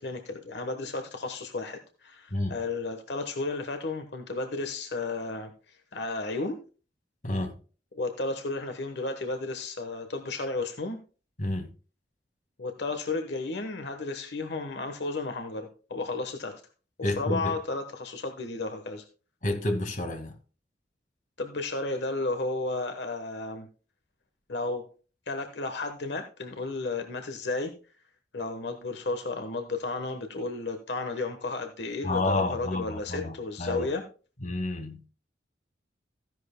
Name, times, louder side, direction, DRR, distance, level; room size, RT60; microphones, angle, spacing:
voice 1, 0.0-6.6 7.9-11.0 12.6-16.6 17.0-19.0 21.4-23.7 24.5-24.9 25.3-27.7 28.3-34.0, left 3 dB, 75° left, 1.2 m, -33 dB
voice 2, 7.2-7.6 11.4-11.7 17.0-17.5 19.4-20.3 32.0-33.9 34.4-35.0, left 1 dB, 45° left, 2.0 m, -30 dB
14.5 x 11.0 x 2.2 m
head